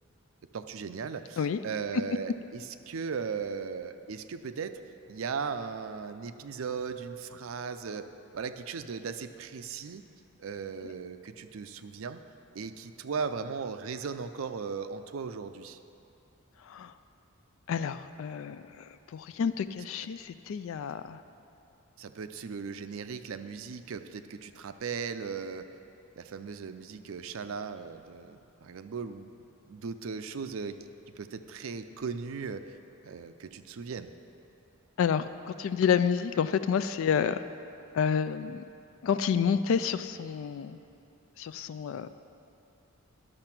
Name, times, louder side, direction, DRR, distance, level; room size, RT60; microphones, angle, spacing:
voice 1, 0.5-4.8 5.1-10.1 10.4-12.2 12.5-15.8 22.0-25.6 26.2-29.3 29.7-30.8 31.2-32.8 33.0-34.1, right 5 dB, 75° right, 10 dB, 0.5 m, -37 dB
voice 2, 17.7-18.9 19.1-21.2 35.0-37.4 37.9-38.6 39.0-40.8 41.4-42.1, left 7 dB, 65° left, 12 dB, 0.3 m, -29 dB
10.5 x 6.6 x 5.9 m, 2.8 s
head